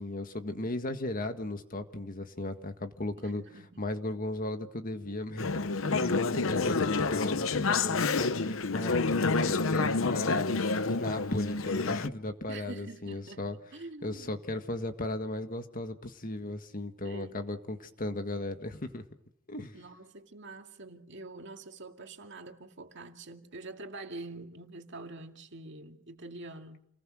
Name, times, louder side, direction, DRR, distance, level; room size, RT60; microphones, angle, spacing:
voice 1, 0.0-3.4 3.8-5.5 5.9-9.0 9.3-13.6 14.0-19.0 19.5-19.7, left 1 dB, 45° left, 1.8 m, -36 dB
voice 2, 3.2-3.8 12.5-14.4 17.0-17.4 19.7-26.9, right 2 dB, 60° right, 2.2 m, -46 dB
Conversation / Chatter, 5.4-12.1, left 4 dB, 70° left, 0.9 m, -28 dB
29.0 x 19.5 x 6.4 m
head